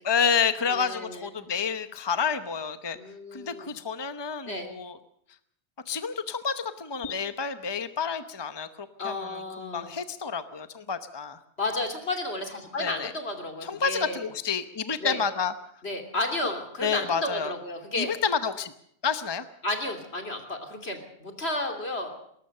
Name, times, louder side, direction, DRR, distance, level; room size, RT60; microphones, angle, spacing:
voice 1, 0.0-3.0 3.3-5.0 5.9-11.4 12.8-13.1 13.6-15.5 16.8-17.5 18.0-18.7 19.0-19.4, left 6 dB, 25° left, 11 dB, 0.9 m, -29 dB
voice 2, 0.7-1.3 2.9-3.7 4.4-4.7 9.0-9.9 11.6-14.2 15.0-15.2 15.8-18.1 19.6-22.2, left 2 dB, 70° left, 5 dB, 3.4 m, -32 dB
20.5 x 19.0 x 6.6 m, 0.70 s
omnidirectional pair, 1.1 m